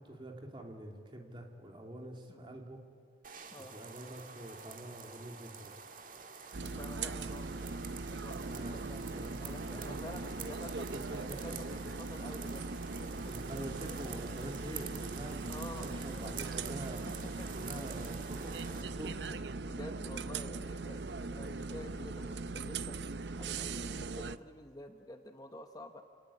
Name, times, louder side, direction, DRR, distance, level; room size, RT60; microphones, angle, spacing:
voice 1, 0.0-2.8 3.7-5.7 8.3-9.3 9.8-10.0 10.9-11.4 11.7-11.8 12.2-12.4 13.2-17.0 17.5-19.2, right 1 dB, 25° right, 2 dB, 2.9 m, -46 dB
sound 1, 3.2-18.8, right 6 dB, 45° right, 1.9 m, -48 dB
sound 2, 6.5-24.4, right 3 dB, 70° right, 0.7 m, -40 dB
voice 2, 6.6-9.0 9.4-13.7 15.5-16.3 17.1-17.5 19.6-21.0 21.3-23.0 23.4-26.0, left 1 dB, 20° left, 6 dB, 1.0 m, -50 dB
27.5 x 19.0 x 8.5 m, 2.3 s
head